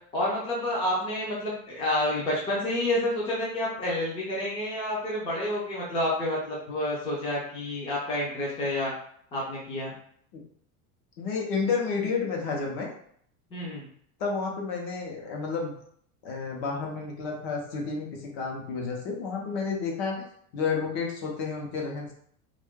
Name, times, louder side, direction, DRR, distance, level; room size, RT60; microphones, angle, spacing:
voice 1, 0.1-8.9 9.3-9.9 13.5-13.9, left 1 dB, 15° left, -6 dB, 0.5 m, -29 dB
voice 2, 11.2-12.9 14.2-15.7 16.2-20.2 20.5-22.1, left 5 dB, 55° left, 0 dB, 1.0 m, -31 dB
2.7 x 2.6 x 3.6 m, 0.63 s
supercardioid pair, 170°, 38 cm